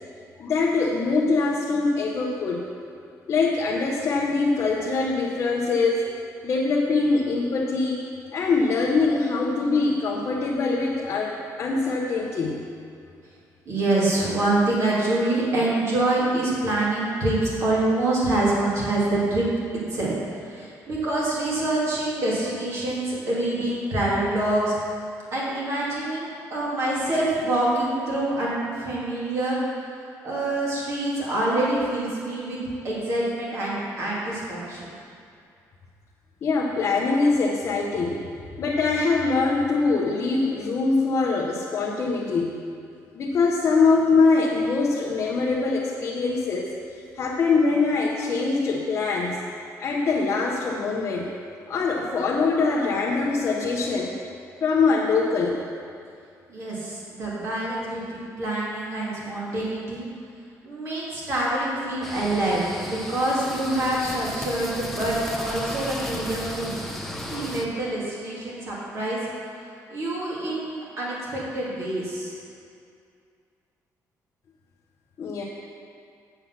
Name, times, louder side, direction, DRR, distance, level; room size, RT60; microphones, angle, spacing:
voice 1, 0.4-2.7 3.3-6.1 6.4-8.0 8.3-12.6 36.4-38.2 38.6-42.6 43.1-46.7 47.1-49.4 49.8-51.3 51.7-54.2 54.6-55.6 75.2-75.4, left 4 dB, 40° left, -2 dB, 0.8 m, -23 dB
voice 2, 13.7-19.5 19.9-24.8 25.3-32.6 32.8-34.9 56.5-60.1 60.6-66.8 67.3-69.2 69.9-72.4, right 2 dB, 45° right, -6 dB, 2.5 m, -26 dB
sound 1, 62.0-67.6, left 1 dB, 5° left, 0.7 m, -34 dB
7.8 x 7.1 x 5.8 m, 2.4 s
cardioid pair, 180°, 7 cm